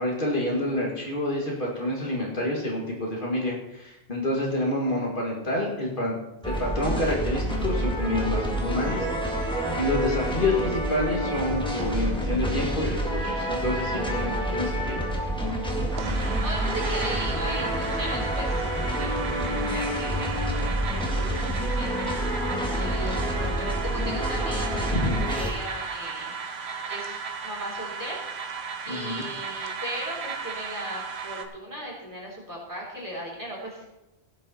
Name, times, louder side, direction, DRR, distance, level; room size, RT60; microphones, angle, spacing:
voice 1, 0.0-6.2 6.4-15.0 19.5-19.8 24.9-25.1 28.9-29.2, left 1 dB, 55° left, -2 dB, 2.0 m, -28 dB
sound 1, 6.4-25.5, equal, 5° left, 1.7 m, -28 dB
voice 2, 16.0-19.1 19.5-22.4 22.8-28.2 28.9-33.9, equal, 20° right, -4 dB, 3.8 m, -37 dB
sound 2, 16.0-31.4, right 5 dB, 90° right, 1.3 m, -35 dB
16.5 x 7.1 x 4.2 m, 0.93 s
omnidirectional pair, 1.1 m